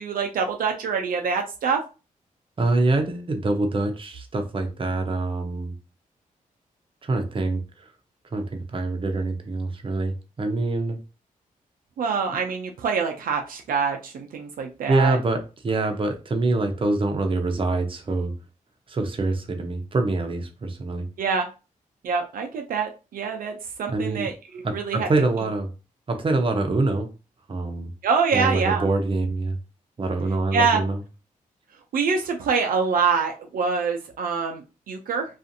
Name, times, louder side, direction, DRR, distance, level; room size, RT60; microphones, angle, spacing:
voice 1, 0.0-1.8 12.0-15.2 21.2-21.5 22.0-25.1 28.0-28.8 30.5-30.8 31.9-35.3, right 5 dB, 80° right, 3 dB, 0.5 m, -25 dB
voice 2, 2.6-5.7 7.0-7.9 8.3-11.0 14.9-18.3 18.9-21.1 23.9-24.3 24.6-25.7 26.1-27.1 27.5-27.9 28.3-29.6 30.0-31.0, right 2 dB, 35° right, 5 dB, 0.7 m, -25 dB
2.5 x 2.4 x 2.6 m, 0.31 s
cardioid pair, 65°, 15 cm